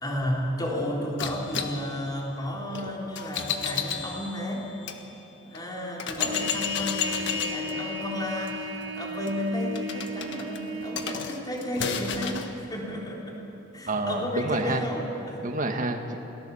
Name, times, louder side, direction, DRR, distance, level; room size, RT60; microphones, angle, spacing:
voice 1, 0.0-4.7 5.4-8.7 9.0-13.4 13.7-15.4, left 1 dB, 20° left, -2 dB, 3.8 m, -32 dB
sound 1, 1.2-5.0 5.5-5.6 6.0-12.5, left 7 dB, 65° left, 1.6 m, -33 dB
Trumpet, 6.2-11.2, right 1 dB, 70° right, 2.0 m, -36 dB
voice 2, 13.9-14.8 15.4-16.3, right 2 dB, 40° right, 4 dB, 1.8 m, -28 dB
28.0 x 19.0 x 7.1 m, 3.0 s
head